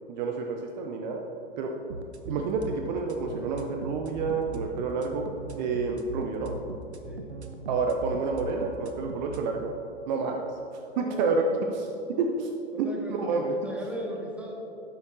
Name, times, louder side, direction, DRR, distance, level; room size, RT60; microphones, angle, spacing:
voice 1, 0.1-1.2 1.6-1.7 2.3-5.3 5.6-6.5 7.7-9.7 10.1-11.9 12.2-12.5 12.8-13.5, right 4 dB, 45° right, 3 dB, 0.8 m, -29 dB
sound 1, 1.9-9.5, right 2 dB, 85° right, 0.9 m, -39 dB
voice 2, 10.9-11.4 12.8-14.5, equal, 5° right, -2 dB, 1.6 m, -38 dB
12.5 x 10.0 x 2.7 m, 3.0 s
figure-of-eight pair, 100°, 32 cm